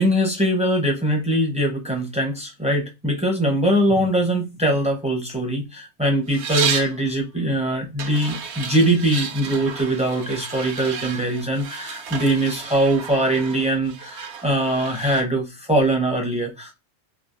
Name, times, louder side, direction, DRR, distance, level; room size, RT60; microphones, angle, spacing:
voice 1, 0.0-16.7, right 1 dB, 10° right, 0.4 m, -22 dB
sound 1, 6.3-7.0 8.0-15.2, right 6 dB, 65° right, 0.9 m, -32 dB
3.2 x 2.4 x 2.4 m
omnidirectional pair, 1.3 m